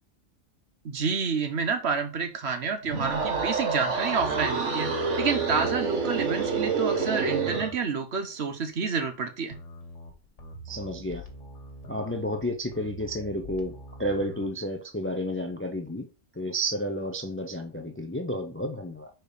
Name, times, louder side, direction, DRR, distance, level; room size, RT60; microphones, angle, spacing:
voice 1, 0.8-4.9 5.2-9.6, right 5 dB, 65° right, 1.2 m, -29 dB
sound 1, 2.8-7.8, right 4 dB, 85° right, 1.6 m, -28 dB
sound 2, 9.5-14.6, equal, 85° left, 1.7 m, -44 dB
voice 2, 10.7-11.2 11.9-13.7 14.0-16.1 16.4-19.1, equal, 15° left, 0.4 m, -31 dB
4.8 x 4.7 x 4.9 m
omnidirectional pair, 1.2 m